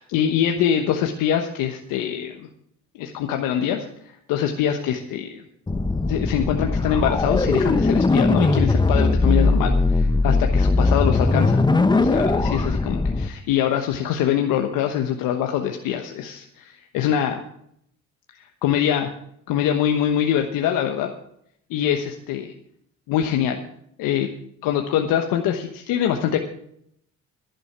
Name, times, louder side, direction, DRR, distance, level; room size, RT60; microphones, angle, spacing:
voice 1, 0.0-2.5 2.9-5.4 6.1-11.6 11.9-17.4 18.3-19.1 19.5-21.1 21.7-22.5 23.1-23.6 24.0-24.3 24.6-26.4, left 9 dB, 75° left, 4 dB, 1.2 m, -24 dB
sound 1, 5.7-13.3, left 3 dB, 15° left, 0.8 m, -19 dB
11.5 x 11.0 x 5.9 m, 0.71 s
supercardioid pair, 65°, 34 cm